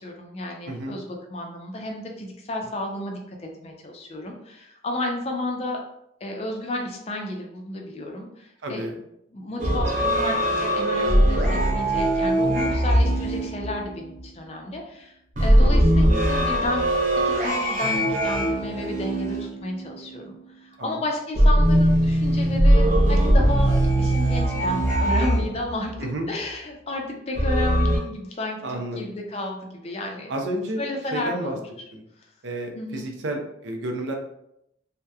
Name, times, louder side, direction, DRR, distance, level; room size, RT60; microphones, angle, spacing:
voice 1, 0.0-5.8 6.2-8.9 9.3-15.1 15.4-16.9 17.2-20.4 20.6-30.3 30.8-31.7 32.8-33.1, left 1 dB, 35° left, 1 dB, 0.4 m, -32 dB
voice 2, 0.7-1.0 8.6-9.0 15.6-16.7 20.8-21.0 26.0-26.3 28.6-29.0 30.3-30.8 31.1-31.6 31.9-32.0 32.4-34.1, right 1 dB, 80° right, 3 dB, 0.5 m, -31 dB
sound 1, 9.6-14.2 15.3-20.1 21.4-26.0 27.4-28.0, right 1 dB, 40° right, 0.6 m, -20 dB
2.8 x 2.1 x 2.3 m, 0.79 s
head